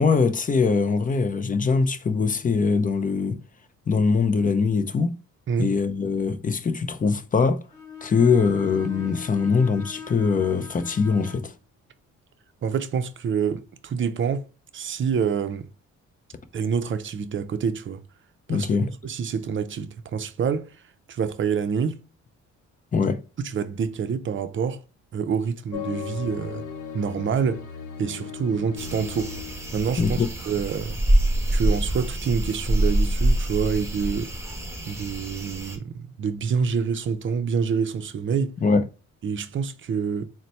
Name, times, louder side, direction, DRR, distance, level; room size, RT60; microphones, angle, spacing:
voice 1, 0.0-3.4 3.9-5.1 5.6-7.6 8.0-11.5 18.5-18.9 22.9-23.2 30.0-30.3 38.6-38.8, left 5 dB, 25° left, 0.5 m, -22 dB
Bowed string instrument, 7.7-11.5, left 7 dB, 10° left, 1.9 m, -41 dB
voice 2, 12.6-14.5 14.7-15.7 16.5-18.0 18.5-18.7 19.0-20.7 21.1-22.0 23.4-24.8 25.1-26.6 26.9-27.6 28.0-29.3 29.7-30.2 30.5-31.0 31.5-34.3 34.9-38.5 39.2-40.3, right 6 dB, 40° right, 0.5 m, -27 dB
sound 1, 25.7-29.8, left 7 dB, 80° left, 0.8 m, -37 dB
sound 2, 28.8-35.8, right 1 dB, 10° right, 1.1 m, -25 dB
4.0 x 2.2 x 4.3 m
cardioid pair, 90°, 30 cm